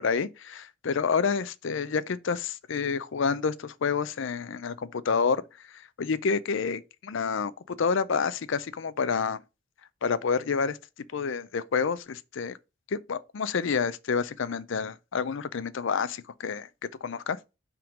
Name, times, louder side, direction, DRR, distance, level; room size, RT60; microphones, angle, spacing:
voice 1, 0.0-5.4 5.7-9.4 10.0-10.8 11.1-12.6 12.9-17.4, left 5 dB, 60° left, 0.4 m, -29 dB
5.7 x 3.7 x 5.1 m
head